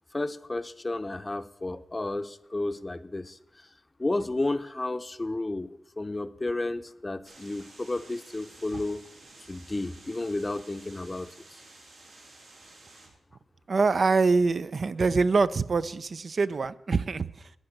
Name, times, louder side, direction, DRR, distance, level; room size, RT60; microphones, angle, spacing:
voice 1, 0.1-3.4 4.0-9.0 9.5-11.3, left 2 dB, 25° left, 12 dB, 0.6 m, -32 dB
sound 1, 7.2-13.1, right 2 dB, 85° right, 3.7 m, -52 dB
voice 2, 13.7-17.5, right 4 dB, 55° right, 13 dB, 0.4 m, -25 dB
11.5 x 8.9 x 5.9 m, 0.82 s
cardioid pair, 75°, 0 cm